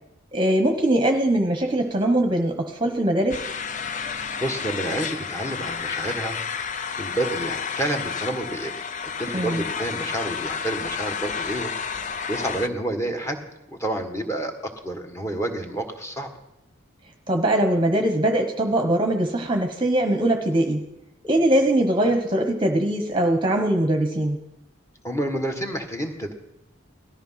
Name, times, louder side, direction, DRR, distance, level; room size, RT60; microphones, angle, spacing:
voice 1, 0.3-3.4 9.3-9.6 17.3-20.8 21.2-24.4, right 1 dB, 25° right, 4 dB, 1.1 m, -21 dB
sound 1, 3.3-12.7, left 6 dB, 35° left, 0.5 m, -31 dB
voice 2, 4.4-6.4 7.0-8.7 9.2-11.7 12.3-13.4 13.7-16.3 25.0-26.3, right 1 dB, 15° left, 4 dB, 1.6 m, -29 dB
18.5 x 13.5 x 5.8 m, 0.86 s
head